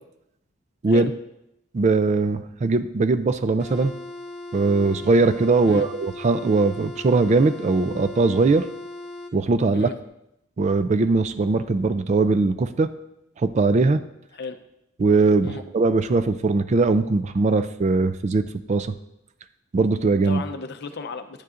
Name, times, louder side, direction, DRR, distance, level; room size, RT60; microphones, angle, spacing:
voice 1, 1.7-3.9 4.5-8.7 9.3-9.9 10.6-12.9 13.4-14.0 15.0-18.9 19.7-20.4, right 3 dB, 35° right, 11 dB, 0.3 m, -20 dB
sound 1, 3.6-9.3, left 1 dB, 5° right, 1.2 m, -38 dB
voice 2, 20.2-21.4, left 4 dB, 50° left, 9 dB, 0.6 m, -34 dB
10.5 x 9.5 x 2.5 m, 0.84 s
head